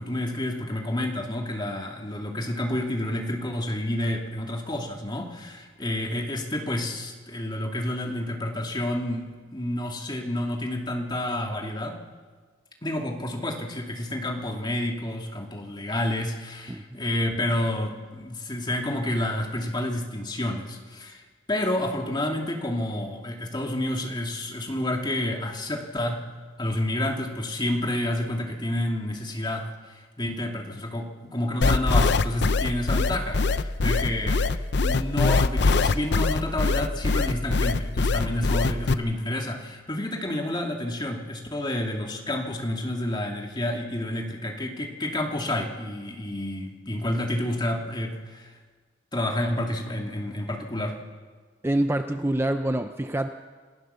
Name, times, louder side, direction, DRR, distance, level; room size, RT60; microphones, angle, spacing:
voice 1, 0.0-12.0 12.8-26.2 26.6-34.4 34.8-48.5 49.1-51.0, left 1 dB, 25° left, 1 dB, 2.4 m, -29 dB
sound 1, 31.6-38.9, left 3 dB, 65° left, 0.7 m, -22 dB
voice 2, 51.6-53.3, right 1 dB, 15° right, 7 dB, 0.6 m, -26 dB
27.5 x 15.0 x 6.9 m, 1.5 s
head